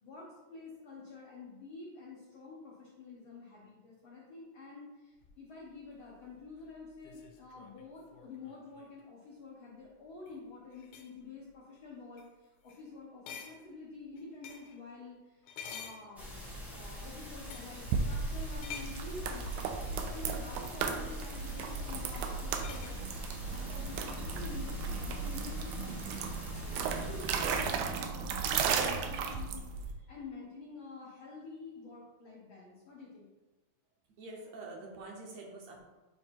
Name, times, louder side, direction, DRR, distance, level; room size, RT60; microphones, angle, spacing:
voice 1, 0.0-26.2 26.4-33.3, left 3 dB, 65° left, -6 dB, 1.3 m, -49 dB
sound 1, 5.2-9.0 10.1-10.4 10.7-11.2 11.7-11.9 12.2-12.3 12.7-12.9 13.3-14.8 15.4-16.6 17.4-17.8 18.6-19.1 20.7-20.8 22.6-23.0, left 7 dB, 80° left, 2.1 m, -49 dB
sound 2, 16.2-27.8, left 1 dB, ahead, 0.4 m, -45 dB
sound 3, 17.9-29.9, right 5 dB, 90° right, 2.1 m, -35 dB
voice 2, 34.2-35.8, right 2 dB, 70° right, -1 dB, 1.9 m, -46 dB
7.8 x 2.8 x 4.4 m, 1.2 s
omnidirectional pair, 3.5 m